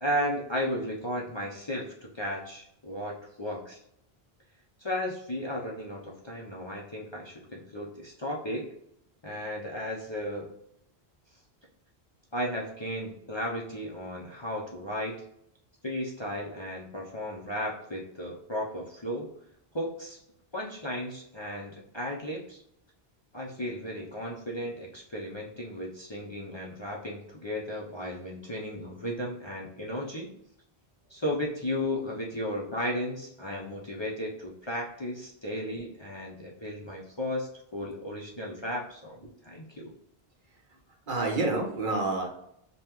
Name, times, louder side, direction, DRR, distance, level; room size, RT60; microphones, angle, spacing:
voice 1, 0.0-3.8 4.8-8.7 9.2-10.5 12.3-15.2 15.8-19.3 19.7-20.2 20.5-22.6 23.3-30.3 31.1-39.9, equal, 30° left, -3 dB, 0.6 m, -34 dB
voice 2, 41.1-42.3, right 2 dB, 55° right, 1 dB, 1.0 m, -29 dB
5.4 x 2.3 x 3.0 m, 0.75 s
omnidirectional pair, 1.1 m